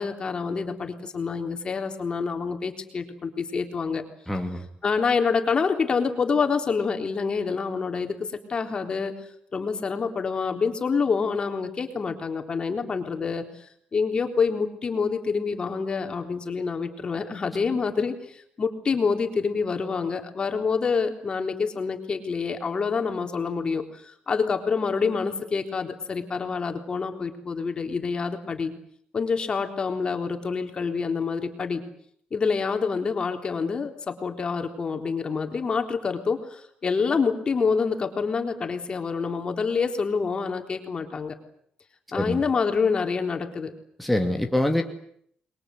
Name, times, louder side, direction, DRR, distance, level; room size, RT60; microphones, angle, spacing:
voice 1, 0.0-4.0 4.8-9.1 9.5-28.7 29.1-31.8 32.3-41.4 42.1-43.7, left 5 dB, 35° left, 5 dB, 3.8 m, -27 dB
voice 2, 4.3-4.7 42.1-42.4 44.0-44.8, left 1 dB, ahead, 3 dB, 2.5 m, -24 dB
29.0 x 22.5 x 7.9 m, 0.67 s
cardioid pair, 120°, 3 cm